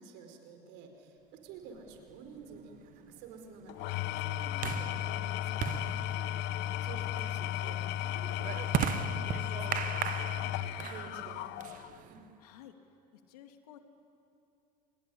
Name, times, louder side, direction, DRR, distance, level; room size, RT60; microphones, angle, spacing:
voice 1, 0.0-6.0 6.7-12.2, right 5 dB, 65° right, 5 dB, 4.6 m, -51 dB
sound 1, 1.9-12.3, right 12 dB, 45° right, 0.8 m, -39 dB
Engine / Tools, 3.7-12.0, left 12 dB, 60° left, 1.0 m, -35 dB
voice 2, 12.4-12.8 13.1-13.8, left 11 dB, 80° left, 7 dB, 2.4 m, -53 dB
27.5 x 21.0 x 10.0 m, 2.7 s
hypercardioid pair, 90°, 20 cm